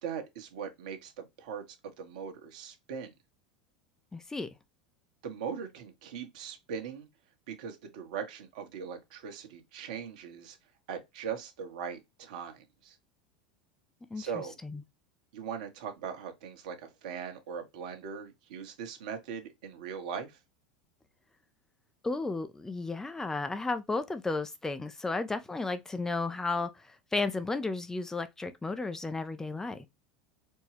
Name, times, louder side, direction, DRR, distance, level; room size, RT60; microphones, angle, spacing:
voice 1, 0.0-3.1 5.2-7.1 7.5-10.6 10.9-12.9 14.2-14.6 15.3-20.4, right 7 dB, 65° right, 1.1 m, -40 dB
voice 2, 4.1-4.5 14.1-14.3 14.6-14.8 22.0-26.7 27.1-29.9, left 3 dB, 10° left, 0.5 m, -33 dB
4.4 x 2.3 x 3.1 m
hypercardioid pair, 85°, 4 cm